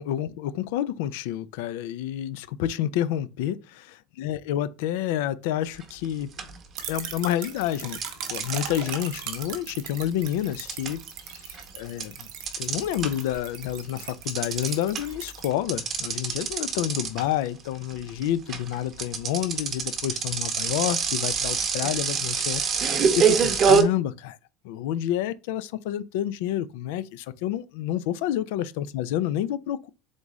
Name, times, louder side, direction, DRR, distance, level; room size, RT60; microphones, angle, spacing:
voice 1, 0.0-3.8 4.2-6.5 6.9-8.0 8.3-11.0 11.3-12.3 12.6-24.4 24.6-29.9, left 11 dB, 80° left, 0.4 m, -29 dB
sound 1, 5.8-6.1 6.4-7.3 8.0-13.4 13.7-23.8, right 6 dB, 35° right, 0.8 m, -25 dB
sound 2, 6.7-15.5, right 9 dB, 75° right, 0.9 m, -39 dB
3.8 x 3.6 x 3.0 m
supercardioid pair, 130°, 0 cm